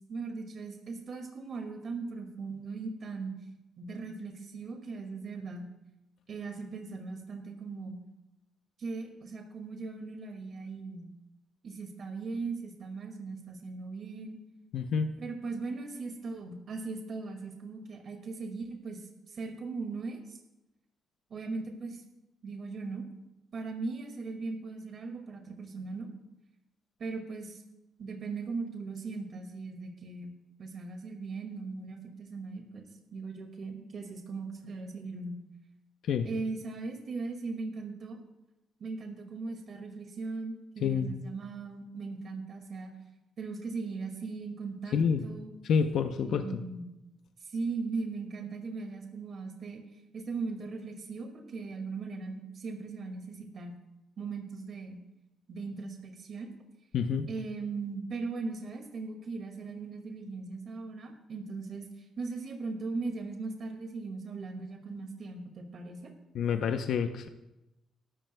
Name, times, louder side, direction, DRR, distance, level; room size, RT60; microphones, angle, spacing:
voice 1, 0.1-3.3 3.8-5.6 6.3-8.0 8.8-11.1 11.6-14.4 15.2-20.4 21.3-22.0 22.4-23.1 23.5-26.1 27.0-27.6 28.0-30.3 30.6-35.4 36.2-38.2 38.8-42.9 43.4-45.0 45.2-45.5 46.2-46.9 47.4-49.8 50.1-53.7 54.2-55.0 55.5-56.5 57.3-66.1, right 4 dB, 55° right, 3 dB, 2.1 m, -39 dB
voice 2, 14.7-15.2 36.0-36.3 40.8-41.1 44.9-45.2 45.6-46.6 56.9-57.3 66.3-67.3, left 6 dB, 70° left, 6 dB, 0.7 m, -28 dB
22.0 x 12.5 x 2.3 m, 0.96 s
cardioid pair, 90°, 0 cm